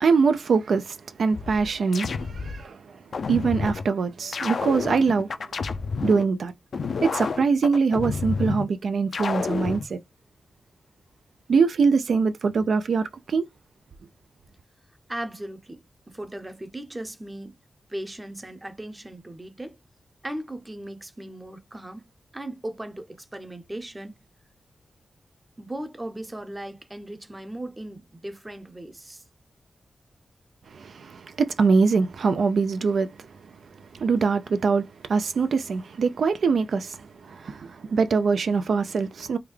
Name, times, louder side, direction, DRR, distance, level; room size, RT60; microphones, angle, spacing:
voice 1, 0.0-3.0 3.3-5.3 6.0-6.5 7.0-10.0 11.5-13.5 30.7-33.1 33.9-39.4, right 5 dB, 80° right, 0.3 m, -23 dB
sound 1, 1.3-2.6 3.1-3.8 4.3-6.2 6.7-8.6 9.1-9.8, left 5 dB, 70° left, 0.4 m, -29 dB
voice 2, 15.1-17.5 17.9-19.8 20.2-22.0 22.3-24.1 25.6-29.2, right 1 dB, 20° right, 0.6 m, -37 dB
3.5 x 2.2 x 3.2 m
wide cardioid pair, 100°, 0 cm